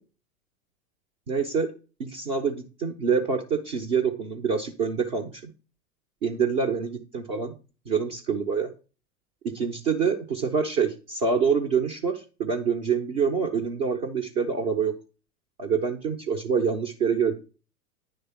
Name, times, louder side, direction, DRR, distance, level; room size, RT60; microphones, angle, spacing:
voice 1, 1.3-1.7 2.0-5.5 6.2-7.5 7.9-8.7 9.4-14.9 15.6-17.3, right 6 dB, 25° right, 4 dB, 0.4 m, -26 dB
9.5 x 3.3 x 4.2 m, 0.34 s
figure-of-eight pair, 95°, 44 cm